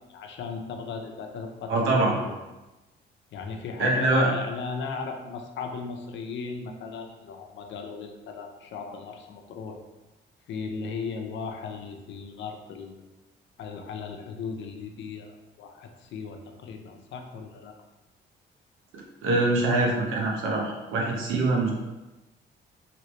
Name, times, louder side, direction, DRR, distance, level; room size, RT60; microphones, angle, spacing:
voice 1, 0.1-2.4 3.3-9.8 10.5-12.9 13.6-17.8, left 5 dB, 70° left, 4 dB, 0.5 m, -37 dB
voice 2, 1.7-2.1 3.8-4.3 18.9-21.7, right 2 dB, 90° right, -1 dB, 0.8 m, -24 dB
3.0 x 2.9 x 3.0 m, 1.1 s
cardioid pair, 90°, 20 cm